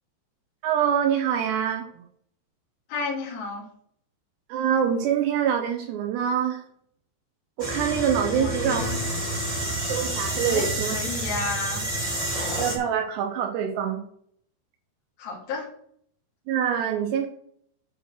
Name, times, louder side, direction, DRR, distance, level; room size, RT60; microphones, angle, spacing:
voice 1, 0.6-1.9 4.5-6.6 7.6-8.9 9.9-11.0 12.6-14.0 16.5-17.3, right 8 dB, 75° right, 4 dB, 2.8 m, -25 dB
voice 2, 2.9-3.6 8.3-9.0 10.5-11.8 15.2-15.7, left 4 dB, 60° left, -5 dB, 4.0 m, -32 dB
sound 1, 7.6-12.8, right 1 dB, 25° right, 0.7 m, -29 dB
10.0 x 4.4 x 6.4 m, 0.65 s
omnidirectional pair, 5.2 m